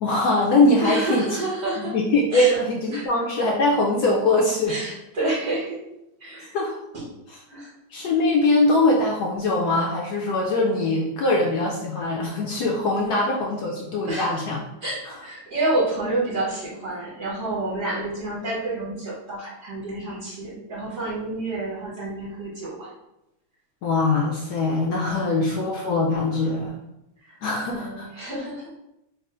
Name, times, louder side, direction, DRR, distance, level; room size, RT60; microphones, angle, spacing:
voice 1, 0.0-1.4 1.8-4.8 6.4-6.8 7.9-14.6 23.8-26.8 27.4-28.1, left 2 dB, 75° left, -1 dB, 0.9 m, -22 dB
voice 2, 0.8-1.9 2.3-2.5 2.9-3.1 4.7-5.8 6.2-6.6 6.9-7.0 7.5-8.0 14.1-14.4 14.8-22.9 25.0-25.6 27.3-27.4 27.7-28.7, right 2 dB, 55° right, -6 dB, 1.3 m, -29 dB
3.8 x 2.0 x 4.1 m, 0.87 s
omnidirectional pair, 2.2 m